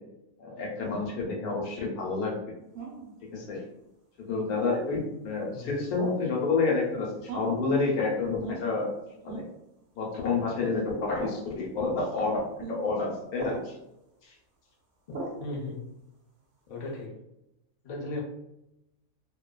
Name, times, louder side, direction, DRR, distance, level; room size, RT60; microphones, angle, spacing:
voice 1, 0.4-2.3 3.2-3.6 4.2-8.9 9.2-9.5 9.9-13.8 14.2-14.3, left 4 dB, 90° left, -2 dB, 1.2 m, -29 dB
sound 1, 2.7-3.1 4.5-4.9 6.0-6.3 7.3-7.6 8.4-8.6 9.3-9.5 10.6-10.8 11.2-11.4 12.6-12.8 13.4-13.7 15.1-15.4, right 3 dB, 65° right, 0.8 m, -37 dB
voice 2, 15.4-15.8 16.7-17.2 17.8-18.2, left 2 dB, 60° left, -3 dB, 0.4 m, -36 dB
2.5 x 2.3 x 2.2 m, 0.87 s
omnidirectional pair, 1.5 m